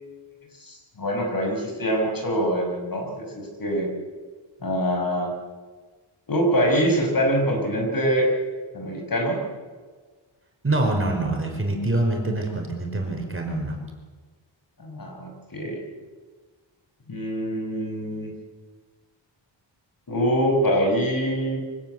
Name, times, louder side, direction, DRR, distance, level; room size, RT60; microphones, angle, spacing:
voice 1, 0.6-3.9 4.6-5.3 6.3-8.3 8.7-9.4 14.8-15.8 17.1-18.3 20.1-21.6, equal, 45° left, 2 dB, 5.9 m, -24 dB
voice 2, 10.6-13.8, right 2 dB, 25° right, 2 dB, 5.3 m, -25 dB
25.0 x 16.5 x 8.0 m, 1.4 s
wide cardioid pair, 100°, 46 cm